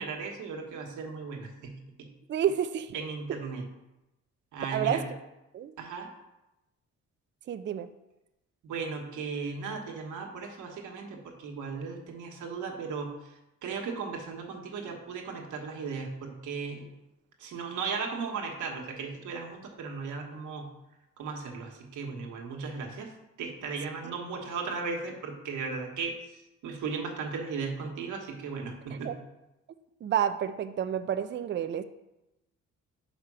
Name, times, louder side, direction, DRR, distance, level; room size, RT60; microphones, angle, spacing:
voice 1, 0.0-2.1 2.9-3.6 4.5-5.0 5.8-6.1 8.6-13.2 13.6-16.9 17.4-20.7 21.2-23.1 23.4-26.1 26.6-29.2, right 5 dB, 80° right, 1 dB, 1.3 m, -36 dB
voice 2, 2.3-2.9 4.7-5.0 5.5-5.7 7.5-7.9 28.9-29.2 30.0-31.8, right 9 dB, 40° right, 10 dB, 0.4 m, -29 dB
5.0 x 4.4 x 6.1 m, 0.94 s
cardioid pair, 90°, 30 cm